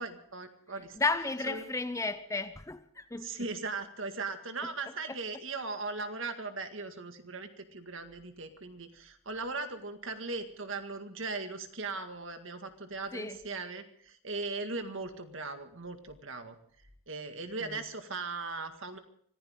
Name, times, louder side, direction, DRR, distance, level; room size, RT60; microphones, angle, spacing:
voice 1, 0.0-1.0 1.5-1.6 3.2-16.6 17.1-19.0, right 3 dB, 60° right, 1.9 m, -38 dB
voice 2, 0.9-3.5 4.6-4.7 5.1-5.2 13.1-13.5 17.6-17.8, left 3 dB, 15° left, 0.6 m, -34 dB
25.0 x 15.5 x 3.7 m
head